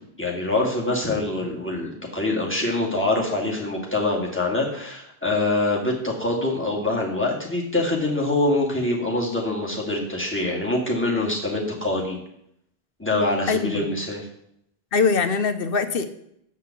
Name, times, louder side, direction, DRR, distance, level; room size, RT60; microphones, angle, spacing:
voice 1, 0.2-12.2 13.0-14.2, left 2 dB, 10° left, -3 dB, 2.2 m, -24 dB
voice 2, 13.5-13.9 14.9-16.1, left 5 dB, 60° left, 9 dB, 1.0 m, -22 dB
7.4 x 5.7 x 7.1 m, 0.74 s
omnidirectional pair, 1.1 m